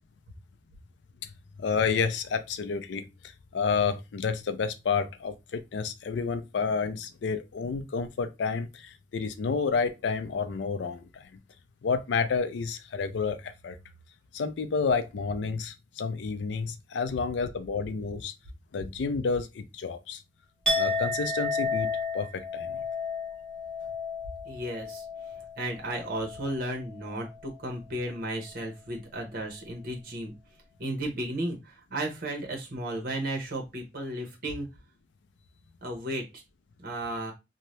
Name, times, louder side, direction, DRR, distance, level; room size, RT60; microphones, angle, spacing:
voice 1, 1.6-11.4 11.8-13.8 14.3-18.3 18.7-20.2 20.7-22.8, left 5 dB, 85° left, 0.4 m, -30 dB
Chink clink, 20.7-26.6 26.9-27.3, left 3 dB, 5° left, 1.0 m, -32 dB
voice 2, 24.4-25.0 25.6-30.3 30.8-34.7 35.8-36.2 36.8-37.3, right 1 dB, 55° right, 0.9 m, -34 dB
2.7 x 2.0 x 3.1 m
head